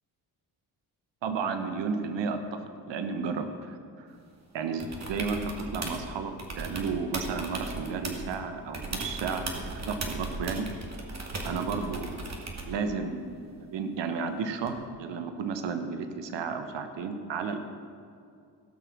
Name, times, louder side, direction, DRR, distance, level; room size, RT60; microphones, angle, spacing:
voice 1, 1.2-4.1 4.5-10.7 11.4-12.3 12.6-17.6, right 5 dB, 65° right, 8 dB, 1.3 m, -33 dB
sound 1, 4.8-6.1 6.4-8.4 8.7-12.8 14.7-14.8, right 2 dB, 35° right, 2.2 m, -37 dB
17.0 x 5.9 x 6.1 m, 2.4 s
supercardioid pair, 55°, 46 cm